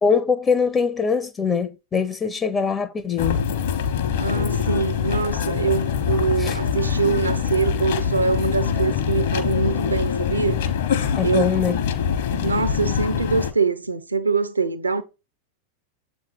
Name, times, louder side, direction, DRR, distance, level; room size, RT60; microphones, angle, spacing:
voice 1, 0.0-3.4 6.4-6.6 11.2-11.8, left 6 dB, 20° left, 0.5 m, -22 dB
sound 1, 3.2-13.5, left 8 dB, 55° left, 0.9 m, -24 dB
voice 2, 4.2-10.6 11.2-11.5 12.4-15.0, right 4 dB, 80° right, 0.6 m, -23 dB
7.5 x 3.1 x 4.5 m
figure-of-eight pair, 90°, 0 cm